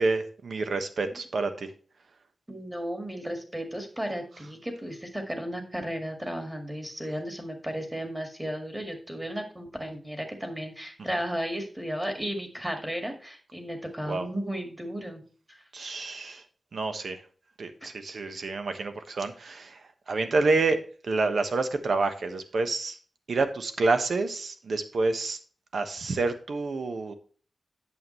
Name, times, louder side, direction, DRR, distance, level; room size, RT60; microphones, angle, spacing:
voice 1, 0.0-1.7 14.1-14.3 15.7-16.4 16.7-17.2 17.6-19.8 20.1-20.8 21.0-23.0 23.3-25.4 25.7-27.1, right 3 dB, 70° right, 8 dB, 1.1 m, -28 dB
voice 2, 2.5-15.2 15.5-15.6, equal, 10° right, 4 dB, 1.9 m, -34 dB
8.6 x 7.2 x 3.1 m, 0.40 s
wide cardioid pair, 130°, 0 cm